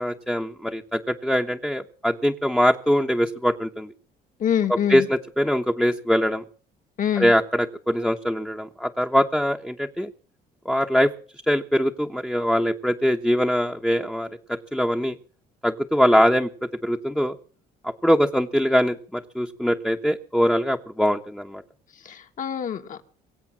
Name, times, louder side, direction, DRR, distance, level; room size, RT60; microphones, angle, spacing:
voice 1, 0.0-3.9 4.7-6.4 7.2-10.1 10.6-11.1 11.5-15.2 15.6-16.5 16.8-17.3 17.8-21.6, equal, 5° left, 3 dB, 1.0 m, -22 dB
voice 2, 4.4-5.1 7.0-7.3 22.1-23.0, left 9 dB, 50° left, 7 dB, 1.9 m, -25 dB
23.0 x 8.0 x 7.4 m, 0.43 s
cardioid pair, 110°, 17 cm